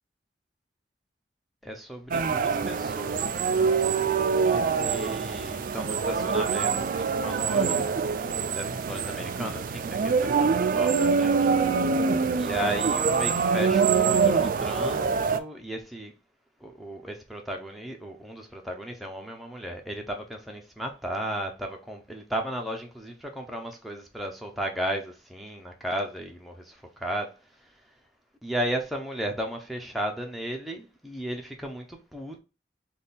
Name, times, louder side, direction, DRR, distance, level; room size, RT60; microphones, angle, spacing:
voice 1, 1.6-3.4 4.5-8.1 8.5-11.9 12.3-16.1 16.6-27.9 28.4-32.4, right 1 dB, ahead, 0.5 m, -35 dB
sound 1, 2.1-15.4, right 5 dB, 50° right, 0.3 m, -25 dB
3.5 x 2.3 x 4.0 m
head